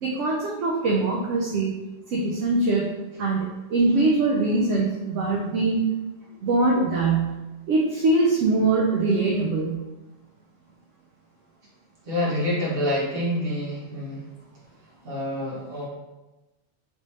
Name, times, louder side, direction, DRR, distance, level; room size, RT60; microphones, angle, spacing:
voice 1, 0.0-1.7 2.1-2.9 3.2-5.9 6.4-7.3 7.7-9.8, right 3 dB, 70° right, -2 dB, 0.9 m, -22 dB
voice 2, 12.0-14.2 15.0-15.9, left 1 dB, 45° right, -7 dB, 1.4 m, -27 dB
3.4 x 3.0 x 2.8 m, 1.0 s
omnidirectional pair, 1.3 m